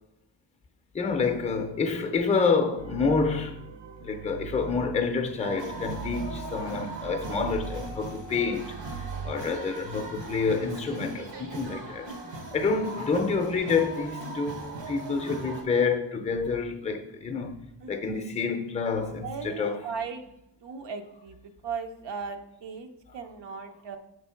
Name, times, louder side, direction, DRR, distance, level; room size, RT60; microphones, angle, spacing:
voice 1, 0.9-3.6 4.0-12.1 12.5-19.8 23.1-23.2, left 4 dB, 15° left, 0.5 m, -28 dB
sound 1, 2.8-9.3, right 4 dB, 40° right, 0.4 m, -41 dB
sound 2, 5.4-15.6, right 2 dB, 90° right, 1.3 m, -39 dB
voice 2, 19.2-20.3 20.6-21.4 21.6-24.0, right 5 dB, 75° right, 0.7 m, -37 dB
6.7 x 3.3 x 5.6 m
wide cardioid pair, 145°, 43 cm